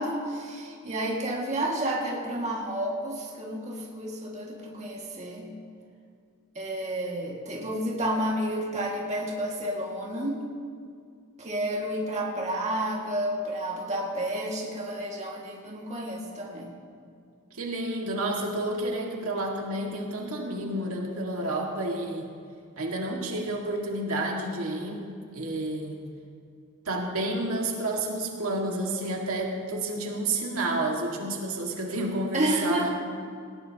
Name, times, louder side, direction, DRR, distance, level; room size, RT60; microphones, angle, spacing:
voice 1, 0.0-5.5 6.6-10.4 11.4-16.7 32.3-32.9, right 1 dB, 30° right, -2 dB, 2.0 m, -30 dB
voice 2, 17.5-22.3 22.8-25.0 25.3-26.0 26.9-32.9, right 1 dB, 75° right, 0 dB, 2.0 m, -30 dB
18.5 x 18.0 x 2.9 m, 2.3 s
head